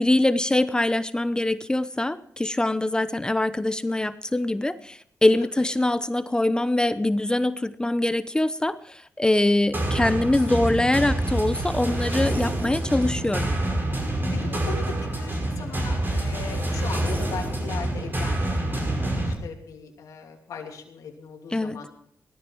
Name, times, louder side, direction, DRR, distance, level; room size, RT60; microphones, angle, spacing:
voice 1, 0.0-13.5 21.5-21.8, left 1 dB, 15° left, 13 dB, 0.8 m, -23 dB
sound 1, 9.7-19.3, right 1 dB, 35° right, 5.6 m, -27 dB
voice 2, 14.3-21.9, left 6 dB, 80° left, 1 dB, 2.8 m, -39 dB
18.0 x 13.5 x 4.6 m, 0.64 s
cardioid pair, 70°, 6 cm